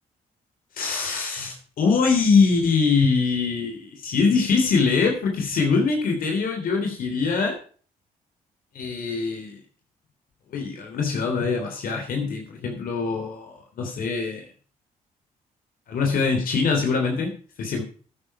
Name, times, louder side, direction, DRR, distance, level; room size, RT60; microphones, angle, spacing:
voice 1, 0.7-7.6 8.7-9.6 10.5-14.4 15.9-17.3 17.6-17.8, left 4 dB, 70° left, 2 dB, 3.2 m, -23 dB
11.5 x 9.7 x 5.6 m, 0.42 s
supercardioid pair, 60°, 15 cm